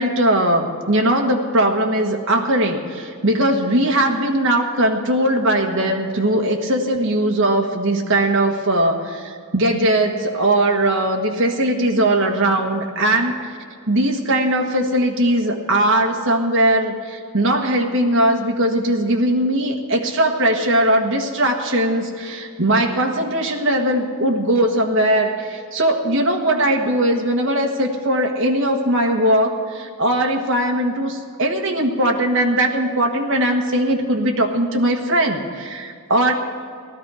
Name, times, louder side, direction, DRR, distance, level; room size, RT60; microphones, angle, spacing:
voice 1, 0.0-13.3 13.9-36.3, right 1 dB, 60° right, 1 dB, 1.5 m, -19 dB
16.5 x 13.0 x 4.9 m, 2.3 s
head